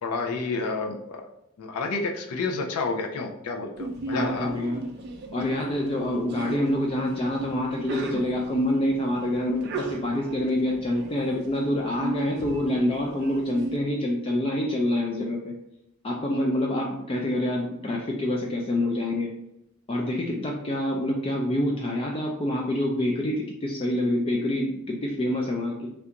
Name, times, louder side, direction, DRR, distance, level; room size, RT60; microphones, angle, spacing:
voice 1, 0.0-1.3 1.6-4.5, left 3 dB, 90° left, 4 dB, 0.4 m, -30 dB
Sneeze, 3.8-13.8, right 2 dB, 50° right, 0.4 m, -37 dB
voice 2, 4.1-4.8 5.3-15.5 16.0-19.3 19.9-25.9, left 1 dB, 25° left, -1 dB, 0.3 m, -26 dB
3.3 x 2.4 x 2.8 m, 0.82 s
head